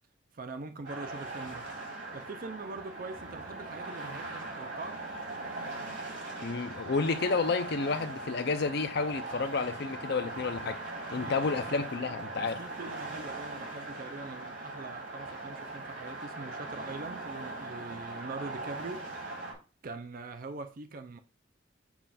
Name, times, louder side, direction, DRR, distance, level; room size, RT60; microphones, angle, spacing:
voice 1, 0.3-1.7 2.1-5.0 11.1-11.6 12.4-19.1 19.8-21.2, right 3 dB, 50° right, 0.5 m, -43 dB
sound 1, 0.8-19.5, right 2 dB, 70° right, 3.1 m, -40 dB
voice 2, 6.4-10.8 11.1-12.6, left 4 dB, 60° left, 0.5 m, -30 dB
7.2 x 2.4 x 5.6 m
head